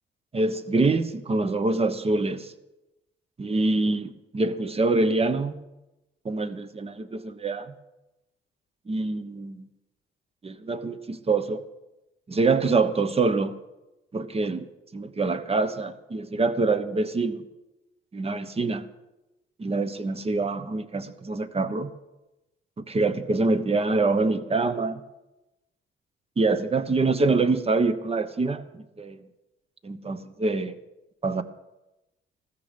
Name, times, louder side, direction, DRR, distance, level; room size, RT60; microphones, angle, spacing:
voice 1, 0.3-2.5 3.4-5.5 6.2-7.7 8.9-9.7 10.4-11.6 12.3-13.5 14.1-14.7 14.9-17.3 18.1-18.8 19.6-21.9 22.8-25.0 26.4-29.2 29.8-30.7 31.2-31.4, right 3 dB, 30° right, 10 dB, 1.1 m, -25 dB
14.5 x 14.0 x 5.3 m, 0.99 s
cardioid pair, 90°, 20 cm